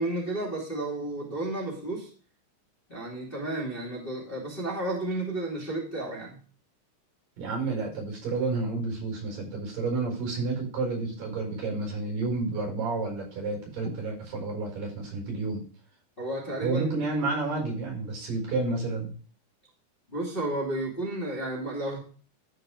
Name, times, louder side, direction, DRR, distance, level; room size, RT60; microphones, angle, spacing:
voice 1, 0.0-2.1 2.9-6.4 16.2-16.8 20.1-22.0, right 1 dB, 15° left, -5 dB, 2.3 m, -32 dB
voice 2, 7.4-15.6 16.6-19.1, right 3 dB, 65° right, 0 dB, 6.4 m, -30 dB
13.5 x 4.9 x 5.0 m, 0.42 s
omnidirectional pair, 4.2 m